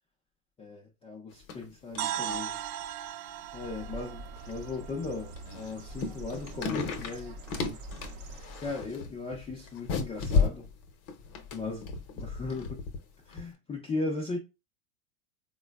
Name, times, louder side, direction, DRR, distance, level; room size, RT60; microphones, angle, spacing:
voice 1, 0.6-2.6 3.5-7.4 8.6-10.7 11.5-11.8 12.2-12.8 13.3-14.4, left 3 dB, 15° left, 0.5 m, -37 dB
sound 1, 1.3-1.7 1.9-2.4 2.8-2.9 3.6-3.7 4.4-4.7 5.2-13.0 13.3-13.4, left 5 dB, 50° left, 0.8 m, -33 dB
sound 2, 2.0-5.9, right 11 dB, 85° right, 0.5 m, -38 dB
Bird, 3.4-9.0, right 2 dB, 50° right, 0.7 m, -45 dB
3.7 x 2.2 x 2.2 m
supercardioid pair, 120°, 44 cm